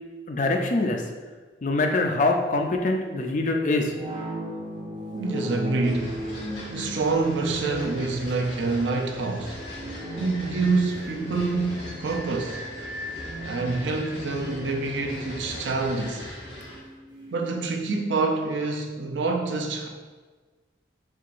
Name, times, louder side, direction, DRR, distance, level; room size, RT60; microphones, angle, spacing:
voice 1, 0.3-1.0 1.6-3.9, left 2 dB, 40° left, 3 dB, 0.4 m, -24 dB
sound 1, 2.1-17.5, right 1 dB, 25° right, 0.5 m, -38 dB
voice 2, 5.1-6.3 6.7-9.6 10.2-12.6 13.4-16.2 17.3-19.9, right 3 dB, 75° right, 3 dB, 0.5 m, -27 dB
sound 2, 5.8-16.8, left 1 dB, 70° left, 1.3 m, -39 dB
4.5 x 3.6 x 2.5 m, 1.4 s
head